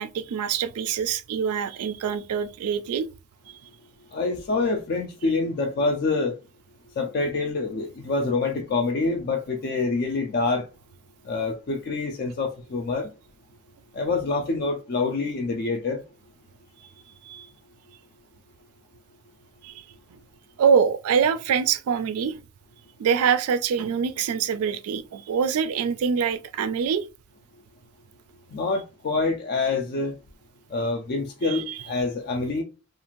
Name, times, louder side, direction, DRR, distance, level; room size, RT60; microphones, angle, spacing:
voice 1, 0.0-3.1 17.2-17.5 19.6-19.7 20.1-20.2 20.6-22.4 23.0-27.1 31.4-31.8, right 7 dB, 70° right, 0.3 m, -24 dB
voice 2, 4.1-6.3 7.0-10.6 11.3-13.1 13.9-16.0 28.5-30.1 30.7-32.6, left 3 dB, 45° left, 0.4 m, -26 dB
2.5 x 2.4 x 2.9 m
head